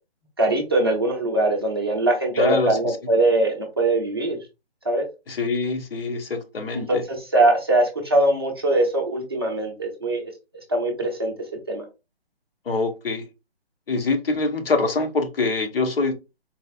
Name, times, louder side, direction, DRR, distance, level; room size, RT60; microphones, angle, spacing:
voice 1, 0.4-4.4 4.8-5.0 6.7-10.3 10.7-11.3 11.7-11.8, right 2 dB, 25° right, 0.6 m, -22 dB
voice 2, 2.3-2.8 5.3-7.0 12.7-13.2 13.9-16.1, left 3 dB, 60° left, 0.9 m, -24 dB
4.0 x 2.4 x 2.4 m
hypercardioid pair, 175°, 32 cm